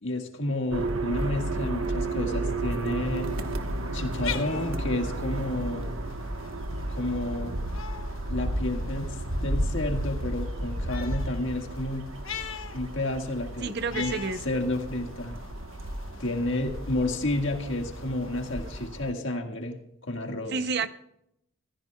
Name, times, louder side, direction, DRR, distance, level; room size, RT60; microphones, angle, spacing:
voice 1, 0.0-3.3 3.9-5.9 6.9-7.5 8.3-12.1 12.7-15.3 16.2-20.6, left 1 dB, 65° left, 1.7 m, -31 dB
sound 1, 0.7-19.1, right 1 dB, 85° right, 1.2 m, -33 dB
sound 2, 3.0-18.9, left 7 dB, 85° left, 1.1 m, -44 dB
voice 2, 13.6-14.4 20.5-20.9, right 4 dB, 55° right, 0.7 m, -29 dB
24.5 x 15.0 x 2.3 m
head